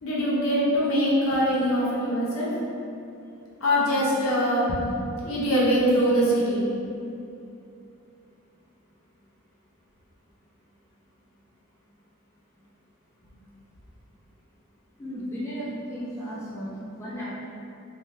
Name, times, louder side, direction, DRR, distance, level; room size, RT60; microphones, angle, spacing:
voice 1, 0.0-2.5 3.6-4.8 5.2-6.7, equal, 65° left, -6 dB, 0.7 m, -23 dB
voice 2, 15.0-17.3, equal, 10° left, -10 dB, 0.4 m, -34 dB
2.6 x 2.2 x 3.2 m, 2.7 s
head